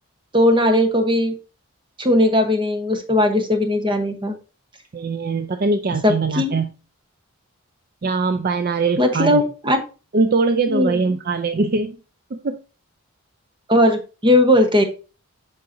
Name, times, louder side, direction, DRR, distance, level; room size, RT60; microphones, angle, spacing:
voice 1, 0.3-1.3 2.0-4.4 6.0-6.6 9.0-9.8 10.7-11.0 13.7-14.8, left 1 dB, 20° right, 5 dB, 1.0 m, -18 dB
voice 2, 4.9-6.7 8.0-9.4 10.1-12.0 12.3-12.6, right 3 dB, 45° right, 8 dB, 0.4 m, -22 dB
7.7 x 5.7 x 2.6 m, 0.34 s
head